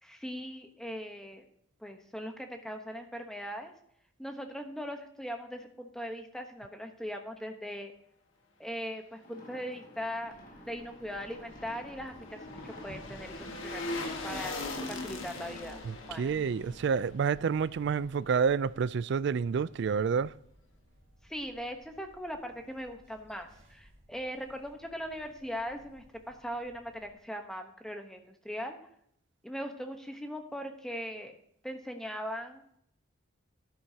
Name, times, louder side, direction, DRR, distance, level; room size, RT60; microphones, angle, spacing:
voice 1, 0.0-1.5 1.8-3.7 4.2-7.9 8.6-10.3 10.7-15.8 16.1-16.3 21.2-28.8 29.4-31.4 31.6-32.6, equal, 5° left, 1.0 m, -40 dB
sound 1, 9.2-14.6, left 1 dB, 40° left, 1.9 m, -52 dB
sound 2, 10.2-27.1, equal, 30° right, 3.8 m, -56 dB
sound 3, 11.1-18.3 18.6-18.7, left 2 dB, 70° left, 1.6 m, -41 dB
voice 2, 15.9-20.3, right 6 dB, 55° right, 0.3 m, -29 dB
12.5 x 10.5 x 2.8 m
head